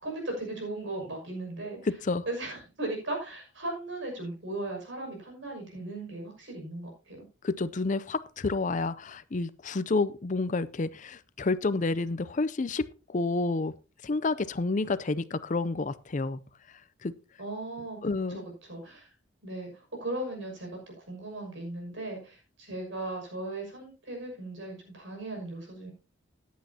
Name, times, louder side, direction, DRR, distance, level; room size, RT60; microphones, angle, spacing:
voice 1, 0.0-1.8 2.3-7.2 17.4-19.1 19.4-25.9, right 2 dB, 70° right, 1 dB, 6.2 m, -37 dB
voice 2, 1.9-2.2 7.4-13.8 14.0-16.4 17.0-17.1 18.0-18.4, left 3 dB, 40° left, 15 dB, 0.5 m, -29 dB
14.5 x 10.5 x 2.8 m, 0.30 s
head